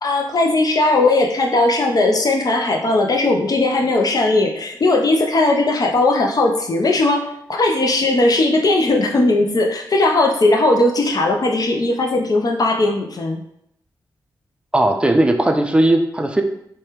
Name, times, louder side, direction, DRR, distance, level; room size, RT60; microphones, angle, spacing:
voice 1, 0.0-13.4, left 2 dB, 50° left, 2 dB, 0.5 m, -18 dB
voice 2, 14.7-16.4, right 1 dB, 10° right, 4 dB, 0.4 m, -17 dB
3.2 x 2.2 x 2.9 m, 0.73 s
cardioid pair, 45°, 8 cm